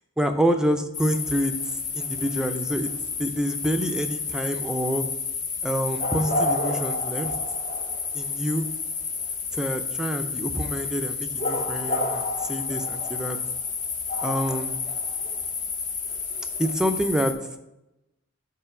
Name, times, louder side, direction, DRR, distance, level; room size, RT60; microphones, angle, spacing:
voice 1, 0.2-1.5 1.9-2.9 3.2-5.0 5.6-7.3 8.1-8.7 9.5-13.4 14.2-14.8 16.6-17.3, equal, 5° right, 6 dB, 0.5 m, -27 dB
sound 1, 0.9-17.3, left 4 dB, 40° left, 0.8 m, -30 dB
5.6 x 4.4 x 5.9 m, 0.91 s
head